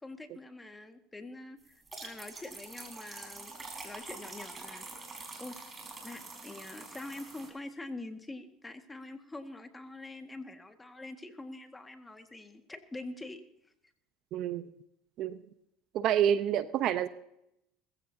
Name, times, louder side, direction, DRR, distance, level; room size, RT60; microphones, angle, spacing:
voice 1, 0.0-3.5 3.8-4.9 5.4-5.6 6.0-13.4, left 2 dB, 15° left, 6 dB, 1.8 m, -45 dB
sound 1, 1.7-7.5, right 3 dB, 20° right, 5.3 m, -46 dB
voice 2, 14.3-14.6 15.2-15.4 15.9-17.1, right 10 dB, 55° right, 12 dB, 0.9 m, -28 dB
21.0 x 15.0 x 2.8 m, 0.78 s
supercardioid pair, 100°, 0 cm